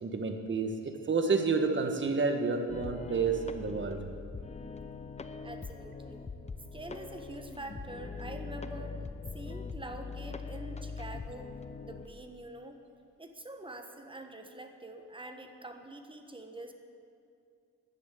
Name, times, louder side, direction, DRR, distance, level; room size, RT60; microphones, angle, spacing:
voice 1, 0.0-4.0, right 4 dB, 40° right, 6 dB, 1.6 m, -30 dB
sound 1, 2.7-12.1, left 4 dB, 20° left, 0.8 m, -42 dB
voice 2, 5.4-6.3 6.7-9.0 9.3-11.5 11.8-12.8 13.2-16.7, right 2 dB, 15° right, 6 dB, 1.3 m, -45 dB
11.5 x 9.8 x 8.5 m, 2.6 s
cardioid pair, 90°, 30 cm